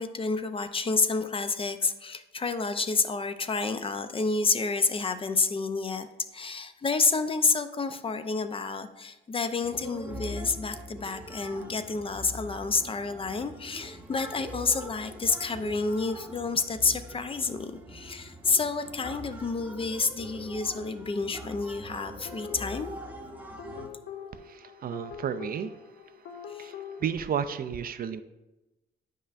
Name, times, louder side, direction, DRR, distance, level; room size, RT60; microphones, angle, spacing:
voice 1, 0.0-6.1 6.3-22.9 26.5-26.7, left 4 dB, 30° left, 10 dB, 0.4 m, -29 dB
sound 1, 9.6-23.9, equal, 10° right, 0.8 m, -43 dB
sound 2, 22.2-27.1, left 7 dB, 70° left, 0.6 m, -44 dB
voice 2, 24.3-28.2, right 8 dB, 50° right, 11 dB, 0.4 m, -34 dB
8.5 x 5.5 x 2.5 m, 1.0 s
cardioid pair, 90°, 20 cm